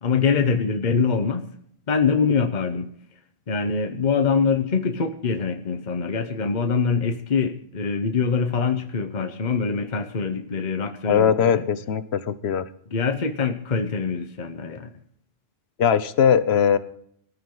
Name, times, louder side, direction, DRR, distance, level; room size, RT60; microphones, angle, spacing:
voice 1, 0.0-1.5 1.9-2.9 3.5-11.7 12.9-14.9, left 5 dB, 45° left, 7 dB, 1.1 m, -24 dB
voice 2, 11.0-12.7 15.8-16.8, left 7 dB, 85° left, 14 dB, 1.1 m, -20 dB
19.5 x 12.0 x 3.9 m, 0.65 s
omnidirectional pair, 1.0 m